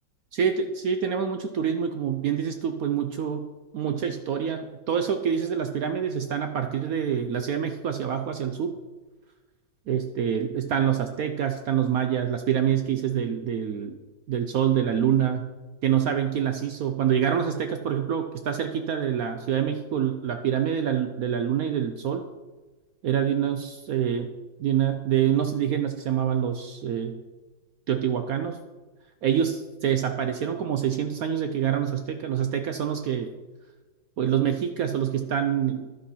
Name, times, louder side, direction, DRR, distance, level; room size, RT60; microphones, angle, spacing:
voice 1, 0.3-3.4 3.7-8.7 9.9-14.0 14.3-15.5 15.8-22.2 23.0-24.3 24.6-27.2 27.9-28.6 29.2-33.3 34.2-35.9, right 9 dB, 75° right, 6 dB, 0.8 m, -26 dB
11.5 x 5.4 x 5.6 m, 1.3 s
omnidirectional pair, 2.1 m